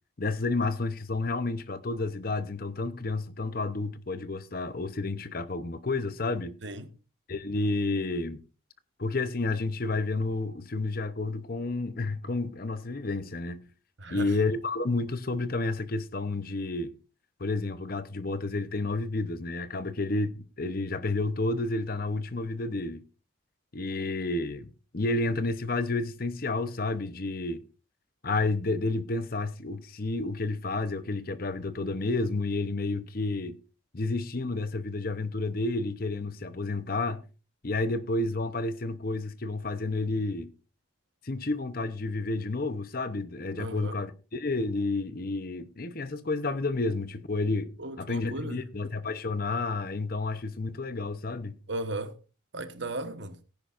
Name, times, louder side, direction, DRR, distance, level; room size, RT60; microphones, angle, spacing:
voice 1, 0.2-6.5 7.3-8.4 9.0-13.6 14.1-16.9 17.4-23.0 23.7-27.6 28.2-33.6 33.9-37.2 37.6-40.5 41.2-47.7 48.0-51.6, left 3 dB, 45° left, 0.8 m, -30 dB
voice 2, 14.0-14.4 43.6-44.0 47.8-48.6 51.7-52.2 52.5-53.4, right 2 dB, 60° right, 1.3 m, -36 dB
17.5 x 10.5 x 2.5 m
head